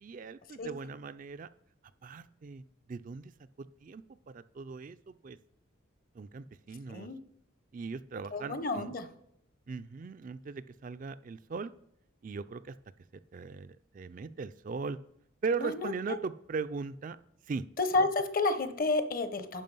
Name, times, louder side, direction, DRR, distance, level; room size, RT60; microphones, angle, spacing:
voice 1, 0.0-1.5 2.0-2.6 2.9-3.3 3.6-5.4 6.1-7.1 7.7-8.9 9.7-11.7 12.2-12.8 13.3-15.0 15.4-17.2 17.5-17.7, right 4 dB, 40° right, 12 dB, 0.3 m, -39 dB
voice 2, 8.3-9.1 15.6-16.2 17.8-19.6, left 3 dB, 45° left, 11 dB, 0.9 m, -30 dB
11.0 x 5.0 x 5.4 m, 0.76 s
head